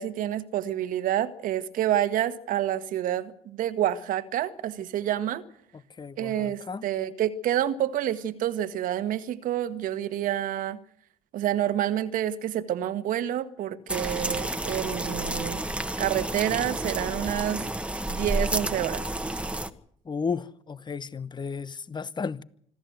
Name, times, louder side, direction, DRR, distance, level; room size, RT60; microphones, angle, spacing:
voice 1, 0.0-5.4 6.2-10.8 11.3-15.6 16.0-17.7 18.1-19.0, right 11 dB, 70° right, 1.6 m, -28 dB
voice 2, 6.0-6.8 20.1-22.4, left 5 dB, 30° left, 1.0 m, -33 dB
sound 1, 13.9-19.7, right 1 dB, 10° right, 1.5 m, -30 dB
26.0 x 13.0 x 8.1 m
hypercardioid pair, 60°, 15 cm